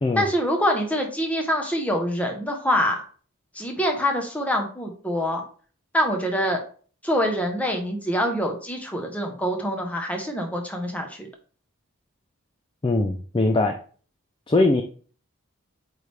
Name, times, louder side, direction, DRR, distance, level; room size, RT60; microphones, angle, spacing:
voice 1, 0.2-3.0 3.5-5.4 5.9-6.6 7.0-11.3, equal, 5° left, 2 dB, 1.0 m, -25 dB
voice 2, 12.8-13.8 14.5-14.8, left 2 dB, 20° left, 4 dB, 0.4 m, -21 dB
8.4 x 3.3 x 3.4 m, 0.42 s
head